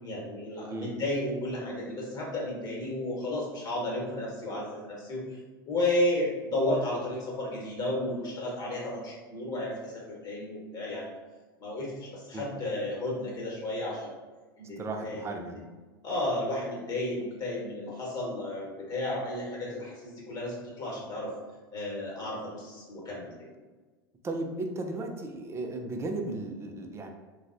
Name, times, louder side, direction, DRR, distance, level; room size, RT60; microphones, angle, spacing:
voice 1, 0.0-5.4 5.7-11.1 11.6-14.1 14.6-15.6 16.0-21.3 21.7-23.3, left 1 dB, 30° left, -3 dB, 1.3 m, -33 dB
voice 2, 14.8-15.6 24.2-27.1, right 2 dB, 20° right, 3 dB, 0.5 m, -35 dB
3.9 x 2.3 x 2.5 m, 1.3 s
hypercardioid pair, 85°, 13 cm